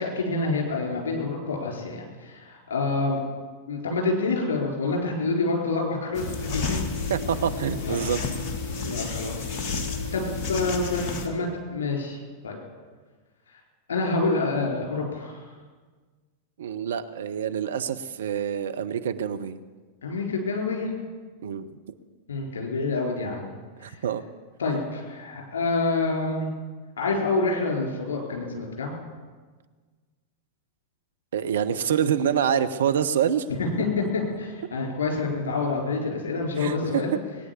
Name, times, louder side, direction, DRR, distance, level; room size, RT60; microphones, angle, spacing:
voice 1, 0.0-3.2 3.7-6.8 7.8-8.0 8.8-9.5 10.1-12.6 13.9-15.4 20.0-20.9 22.3-23.5 23.9-24.0 24.6-26.5 27.0-28.9 33.6-37.1, left 3 dB, 65° left, 0 dB, 4.2 m, -27 dB
sound 1, 6.1-11.3, left 4 dB, 40° left, 1.7 m, -31 dB
voice 2, 7.1-8.2 16.6-19.6 21.4-21.8 23.8-24.2 31.3-33.4 36.6-37.0, right 8 dB, 65° right, 10 dB, 0.7 m, -26 dB
19.5 x 9.5 x 7.1 m, 1.4 s
figure-of-eight pair, 90°, 0 cm